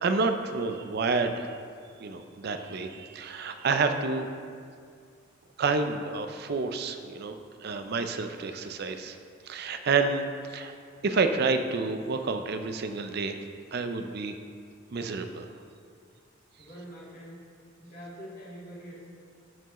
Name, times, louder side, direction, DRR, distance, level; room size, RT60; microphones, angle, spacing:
voice 1, 0.0-1.6 2.0-4.3 5.6-7.3 7.6-9.2 9.4-10.2 10.5-10.7 11.0-13.4 13.7-14.4 14.9-15.5, right 4 dB, 50° right, 7 dB, 0.4 m, -29 dB
voice 2, 16.6-17.4 17.8-19.1, equal, 45° left, -6 dB, 1.7 m, -44 dB
12.0 x 4.6 x 3.0 m, 2.2 s
head